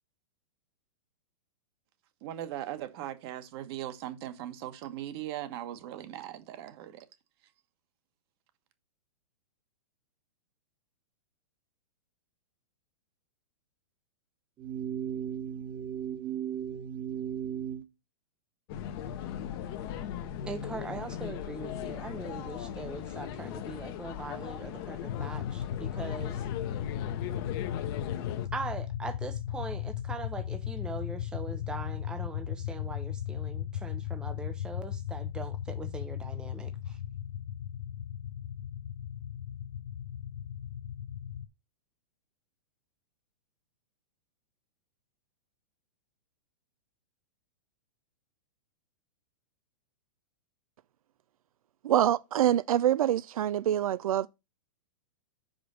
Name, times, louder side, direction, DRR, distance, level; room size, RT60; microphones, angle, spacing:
voice 1, 2.2-7.1, right 12 dB, 45° right, 1.3 m, -39 dB
sound 1, 14.6-17.8, right 9 dB, 20° right, 1.1 m, -35 dB
sound 2, 18.7-28.5, left 10 dB, 45° left, 0.9 m, -38 dB
voice 2, 20.5-26.4 28.5-37.0, right 3 dB, 5° right, 0.6 m, -41 dB
sound 3, 25.0-41.5, left 10 dB, 65° left, 0.6 m, -36 dB
voice 3, 51.8-54.3, right 11 dB, 85° right, 0.4 m, -25 dB
5.1 x 5.0 x 6.2 m
hypercardioid pair, 140°, 18 cm